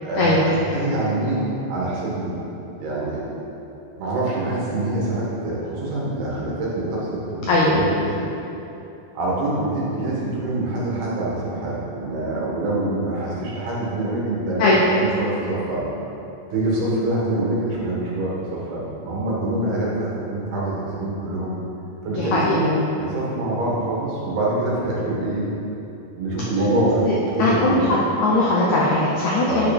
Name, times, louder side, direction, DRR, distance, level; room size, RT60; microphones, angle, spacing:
voice 1, 0.0-2.4 2.8-3.3 4.0-8.3 9.2-15.9 16.5-21.6 22.0-25.5 26.2-27.9 29.5-29.7, right 1 dB, 85° right, -6 dB, 3.7 m, -25 dB
voice 2, 22.2-22.6 27.4-29.7, left 2 dB, 80° left, -5 dB, 1.7 m, -19 dB
9.8 x 5.7 x 4.3 m, 2.9 s
omnidirectional pair, 4.4 m